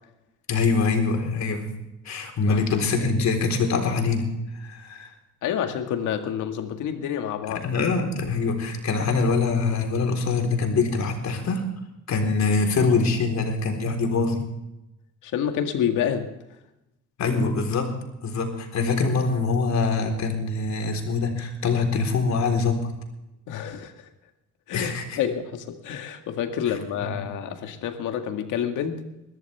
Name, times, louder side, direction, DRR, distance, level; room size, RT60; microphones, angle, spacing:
voice 1, 0.5-1.7 2.0-4.3 4.5-5.1 7.4-11.6 12.1-14.4 17.2-18.0 18.2-22.9 24.7-25.2 27.0-27.2, left 4 dB, 65° left, 4.0 m, -24 dB
voice 2, 5.4-7.6 15.2-16.3 23.5-23.9 24.7-29.0, left 9 dB, 85° left, 1.9 m, -28 dB
21.5 x 13.5 x 3.5 m
cardioid pair, 90°, 30 cm